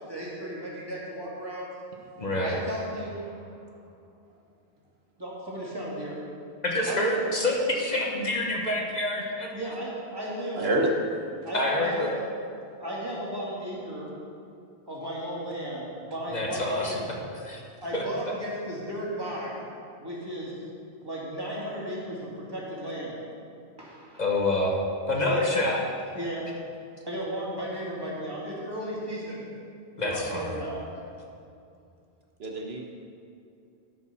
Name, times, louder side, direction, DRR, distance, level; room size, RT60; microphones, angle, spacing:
voice 1, 0.0-1.7 2.4-3.5 5.2-6.2 6.9-7.3 9.5-10.6 11.4-12.0 12.7-14.1 14.9-17.0 17.8-19.6 20.0-20.5 21.0-23.2 23.8-24.2 25.2-25.4 26.1-26.4 27.0-29.5 30.0-30.8, right 1 dB, 25° right, -6 dB, 2.4 m, -35 dB
voice 2, 2.2-2.6 6.6-9.7 11.5-12.2 16.3-17.0 17.4-17.6 17.9-18.0 24.2-24.8 25.1-25.8 30.0-30.6, left 1 dB, 45° left, -1 dB, 1.3 m, -27 dB
voice 3, 10.5-10.9 11.4-11.5 32.4-32.9, right 1 dB, 80° right, 0 dB, 1.3 m, -27 dB
12.0 x 5.4 x 6.0 m, 2.5 s
omnidirectional pair, 1.0 m